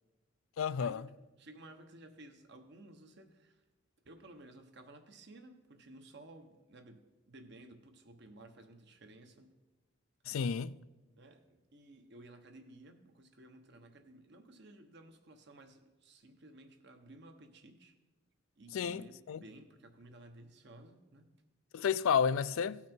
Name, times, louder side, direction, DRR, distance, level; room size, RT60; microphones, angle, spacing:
voice 1, 0.6-1.1 10.3-10.7 18.7-19.4 21.7-22.8, left 7 dB, 90° left, 0.4 m, -31 dB
voice 2, 1.4-3.6 4.0-9.5 11.2-17.9 18.6-19.1 19.4-21.3, right 1 dB, 60° right, 1.1 m, -55 dB
17.0 x 5.8 x 4.5 m
head